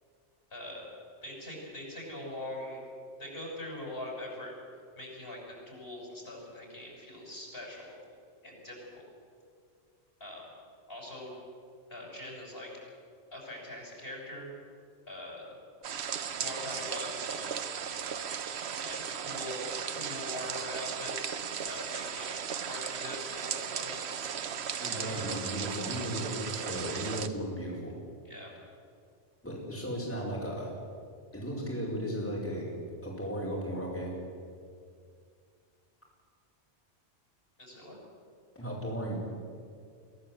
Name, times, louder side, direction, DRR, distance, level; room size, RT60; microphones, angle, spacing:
voice 1, 0.5-0.9 1.2-2.8 3.2-4.5 5.0-8.0 8.4-9.1 10.2-10.4 10.9-11.3 11.9-12.7 13.3-14.5 15.1-15.6 16.4-17.5 18.8-22.4 22.7-24.2 24.9-25.3 28.2-28.5 37.6-38.0, left 1 dB, 50° left, -2 dB, 6.6 m, -42 dB
sound 1, 15.8-27.3, right 7 dB, 65° right, 1.1 m, -36 dB
voice 2, 24.8-27.9 29.4-30.7 31.3-32.7 33.0-34.2 38.5-39.2, equal, 10° left, -5 dB, 4.9 m, -35 dB
24.0 x 16.5 x 7.8 m, 2.2 s
omnidirectional pair, 1.2 m